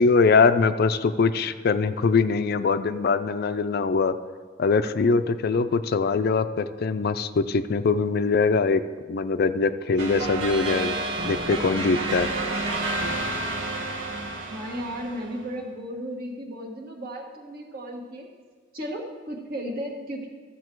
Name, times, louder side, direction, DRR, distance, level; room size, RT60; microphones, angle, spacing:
voice 1, 0.0-4.1 4.6-8.8 9.1-11.0 11.2-12.3, left 4 dB, 55° left, 11 dB, 0.4 m, -22 dB
sound 1, 10.0-15.5, right 2 dB, 80° right, 1.4 m, -30 dB
voice 2, 14.5-18.3 18.7-20.3, equal, 50° right, 1 dB, 1.5 m, -34 dB
13.5 x 7.2 x 4.6 m, 1.5 s
head